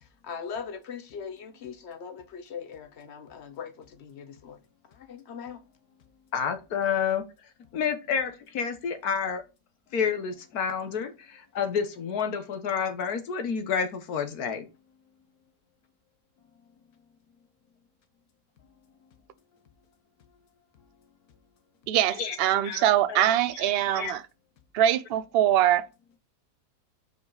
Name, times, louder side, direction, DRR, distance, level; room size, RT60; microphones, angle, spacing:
voice 1, 0.2-4.6 4.9-5.6, left 6 dB, 55° left, 0.9 m, -40 dB
voice 2, 6.3-7.2 7.7-9.4 9.9-14.6 22.2-22.4 22.6-23.3 23.6-24.2, left 7 dB, 85° left, 1.5 m, -29 dB
voice 3, 21.9-24.2 24.7-25.9, right 11 dB, 60° right, 0.6 m, -23 dB
5.2 x 4.6 x 4.0 m
omnidirectional pair, 1.6 m